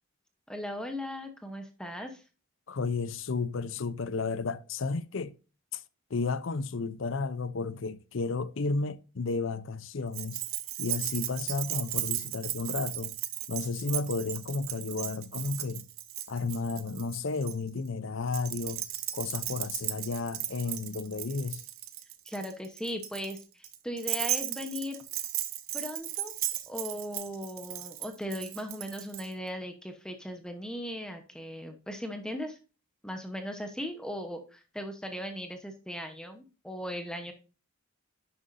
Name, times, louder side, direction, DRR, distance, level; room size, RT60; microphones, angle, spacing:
voice 1, 0.5-2.2 22.2-25.0 25.7-26.3 26.7-32.6 33.0-37.3, equal, 5° left, 0.9 m, -38 dB
voice 2, 2.7-5.3 5.7-5.8 6.1-10.4 10.8-13.1 13.5-15.9 16.3-18.8 19.1-21.6, left 4 dB, 65° left, 0.6 m, -32 dB
Keys jangling, 10.1-17.5 18.3-29.3, right 14 dB, 80° right, 0.8 m, -36 dB
10.5 x 6.9 x 2.6 m
head